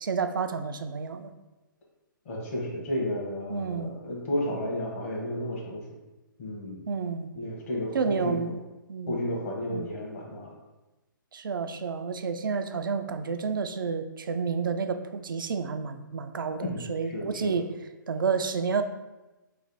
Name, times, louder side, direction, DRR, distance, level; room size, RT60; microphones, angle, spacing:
voice 1, 0.0-1.3 3.5-3.9 6.9-7.3 7.9-8.6 8.9-9.2 9.7-9.9 11.3-17.6 18.1-18.8, right 5 dB, 75° right, 8 dB, 0.4 m, -30 dB
voice 2, 2.2-5.8 6.4-6.8 7.3-8.5 9.1-10.5 16.6-17.6, left 1 dB, 45° left, -2 dB, 1.1 m, -32 dB
3.2 x 2.6 x 3.9 m, 1.1 s
figure-of-eight pair, 135°, 11 cm